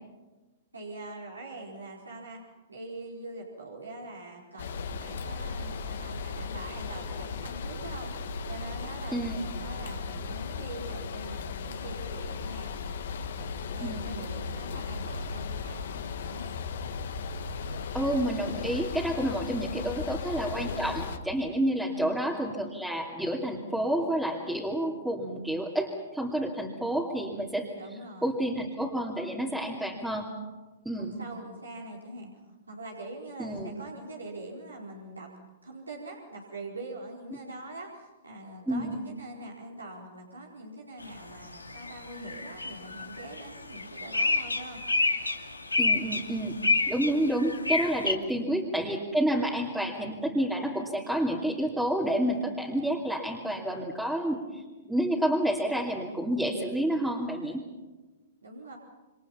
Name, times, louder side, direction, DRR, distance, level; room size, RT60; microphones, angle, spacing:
voice 1, 0.7-2.4 2.7-8.1 8.5-13.0 13.3-16.5 19.7-19.9 21.8-22.2 27.7-28.4 30.9-32.3 32.7-35.3 35.6-44.8 48.3-48.6 58.4-58.8, right 2 dB, 85° right, -3 dB, 4.5 m, -43 dB
sound 1, 4.6-21.2, left 5 dB, 60° left, 1.9 m, -36 dB
voice 2, 13.8-14.1 17.9-27.7 28.2-30.3 30.8-31.1 33.4-33.7 38.7-39.0 45.8-46.6 46.9-57.6, right 1 dB, 5° right, -3 dB, 2.8 m, -29 dB
sound 2, 41.0-41.1 41.4-48.1, left 3 dB, 90° left, 2.4 m, -29 dB
28.0 x 26.0 x 5.8 m, 1.2 s
figure-of-eight pair, 115°, 0 cm